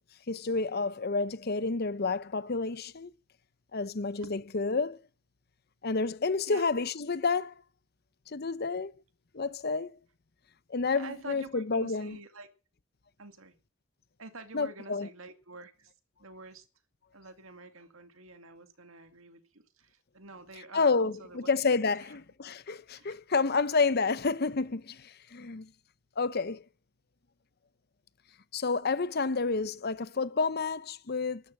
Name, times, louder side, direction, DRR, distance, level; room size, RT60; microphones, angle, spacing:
voice 1, 0.3-3.1 3.7-5.0 5.8-7.5 8.3-8.9 9.3-10.0 10.7-12.2 14.5-15.1 20.7-25.7 26.2-26.6 28.5-31.4, left 4 dB, 50° left, 0.8 m, -29 dB
voice 2, 10.9-12.5 13.2-13.5 14.2-15.9 16.2-16.7 17.1-21.5 21.9-22.2 23.0-23.1, right 3 dB, 75° right, 2.2 m, -48 dB
12.5 x 12.0 x 7.6 m
head